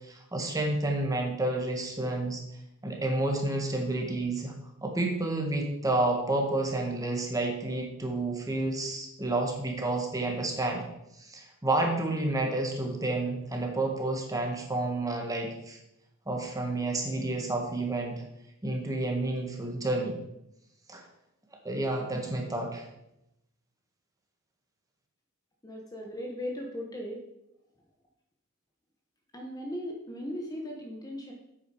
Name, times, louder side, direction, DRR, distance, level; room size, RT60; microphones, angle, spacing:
voice 1, 0.1-2.4 2.8-4.5 4.8-10.8 11.2-15.8 16.3-18.2 18.6-20.2 20.9-21.0 21.6-22.9, right 2 dB, 15° right, 1 dB, 1.7 m, -30 dB
voice 2, 25.6-27.2 29.3-31.3, equal, 15° left, 1 dB, 1.1 m, -37 dB
9.1 x 8.4 x 4.9 m, 0.85 s
head